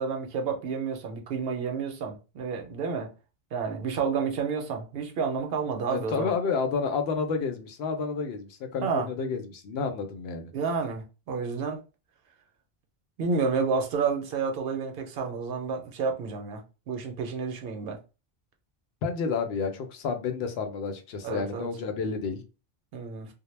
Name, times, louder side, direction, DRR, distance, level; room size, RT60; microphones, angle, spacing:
voice 1, 0.0-3.1 3.5-6.3 8.8-9.1 10.5-11.8 13.2-18.0 21.2-21.7 22.9-23.3, right 5 dB, 75° right, 0.8 m, -30 dB
voice 2, 5.9-10.5 19.0-22.4, left 5 dB, 85° left, 0.8 m, -30 dB
2.1 x 2.0 x 3.1 m
omnidirectional pair, 1.0 m